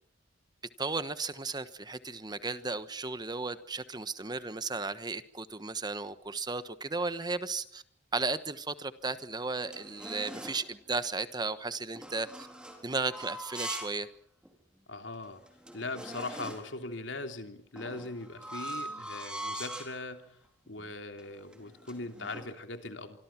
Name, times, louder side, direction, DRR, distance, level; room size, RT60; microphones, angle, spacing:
voice 1, 0.8-7.8 8.1-12.5 12.8-14.1, right 3 dB, 20° right, 12 dB, 1.2 m, -35 dB
sound 1, 9.2-10.7 12.0-14.0 14.4-14.5 15.1-15.2 15.4-16.8 17.8-20.0 20.7-20.9 21.2-22.5, right 1 dB, 5° right, 4.2 m, -42 dB
voice 2, 14.9-15.4 15.7-20.4 20.7-23.2, left 2 dB, 80° left, 6 dB, 3.1 m, -40 dB
25.5 x 25.0 x 6.0 m, 0.62 s
head